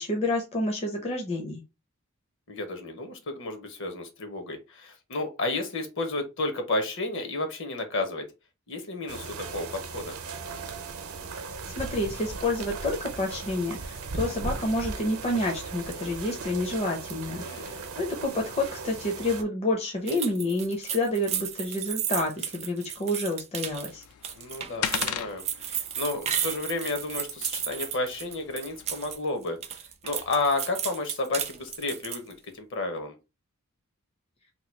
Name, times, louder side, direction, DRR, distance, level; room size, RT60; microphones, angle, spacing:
voice 1, 0.0-1.6 11.7-24.0, left 1 dB, 30° left, 1 dB, 0.5 m, -29 dB
voice 2, 2.5-8.3 8.7-10.2 17.4-17.9 24.4-29.6 30.0-33.2, left 2 dB, 60° left, 6 dB, 0.9 m, -32 dB
sound 1, 9.1-19.4, right 4 dB, 75° right, 0.7 m, -37 dB
sound 2, 20.1-29.2 29.5-32.3, right 9 dB, 30° right, 0.3 m, -33 dB
sound 3, 23.7-29.2, left 9 dB, 90° left, 0.4 m, -38 dB
3.0 x 2.3 x 4.2 m, 0.27 s
head